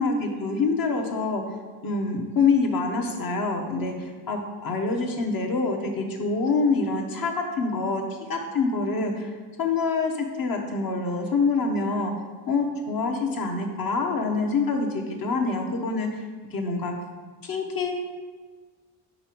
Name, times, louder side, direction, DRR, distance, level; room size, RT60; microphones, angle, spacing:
voice 1, 0.0-1.4 1.8-8.0 8.3-9.3 9.6-10.1 10.4-12.1 12.5-16.2 16.5-16.9 17.4-17.9, left 4 dB, 50° left, 3 dB, 1.1 m, -26 dB
5.4 x 5.0 x 4.6 m, 1.4 s
cardioid pair, 110°, 43 cm